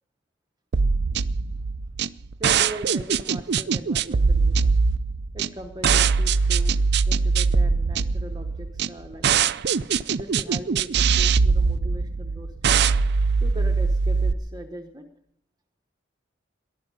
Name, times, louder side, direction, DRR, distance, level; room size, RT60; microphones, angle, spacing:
sound 1, 0.7-14.3, right 5 dB, 60° right, 0.5 m, -22 dB
voice 1, 2.4-4.7 5.3-6.8 7.1-9.3 10.1-12.5 13.4-15.1, right 1 dB, 20° right, 4 dB, 1.1 m, -39 dB
19.0 x 12.0 x 5.3 m, 0.73 s
head